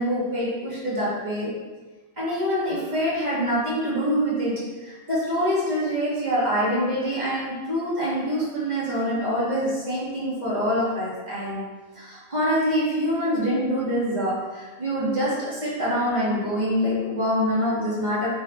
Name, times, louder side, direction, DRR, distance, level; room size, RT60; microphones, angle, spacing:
voice 1, 0.0-1.6 2.2-11.7 11.9-18.3, equal, 30° right, -7 dB, 2.2 m, -25 dB
8.3 x 4.4 x 3.2 m, 1.3 s
omnidirectional pair, 1.5 m